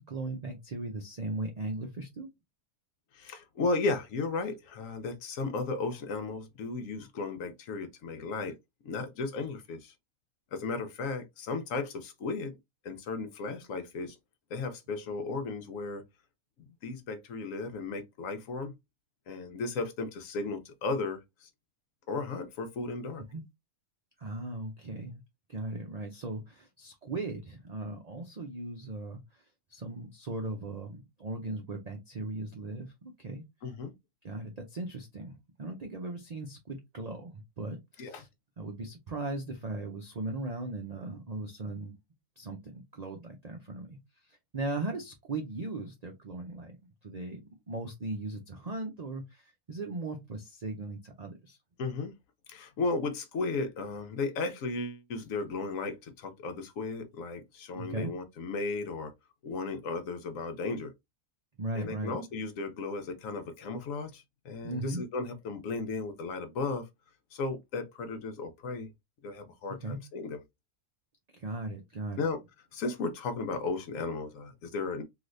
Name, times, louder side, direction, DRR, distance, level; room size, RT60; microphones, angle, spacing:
voice 1, 0.0-2.3 23.3-23.4 24.2-25.2 25.5-29.2 29.7-33.4 34.2-38.3 38.6-42.0 42.4-44.0 44.3-46.8 47.0-51.6 57.7-58.1 61.6-62.2 64.6-65.0 69.8-70.0 71.3-72.3, right 2 dB, 70° right, 0.3 m, -38 dB
voice 2, 3.1-8.6 8.8-9.9 10.5-12.6 12.8-14.2 14.5-16.0 16.6-18.7 19.3-21.5 22.1-23.2 33.6-33.9 38.0-38.2 51.8-52.1 52.5-59.1 59.4-60.9 61.8-66.9 67.3-68.9 69.2-70.4 72.2-72.4 72.7-75.0, left 3 dB, 70° left, 1.0 m, -35 dB
3.3 x 2.7 x 2.5 m
omnidirectional pair, 1.5 m